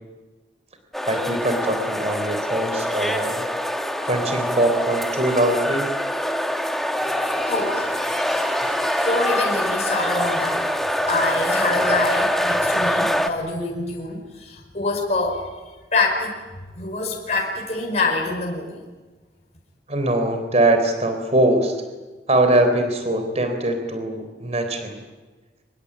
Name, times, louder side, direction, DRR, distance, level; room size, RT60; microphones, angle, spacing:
sound 1, 0.9-13.3, equal, ahead, 1.5 m, -24 dB
voice 1, 1.1-3.5 4.0-5.9 19.9-21.8 22.3-25.0, right 1 dB, 40° right, 7 dB, 3.8 m, -22 dB
sound 2, 7.0-12.0, right 2 dB, 80° right, 5.7 m, -43 dB
voice 2, 7.4-8.0 9.0-10.6 11.1-15.5 15.9-16.3 16.8-18.8, left 3 dB, 40° left, 0 dB, 5.1 m, -25 dB
25.5 x 21.5 x 8.9 m, 1.3 s
head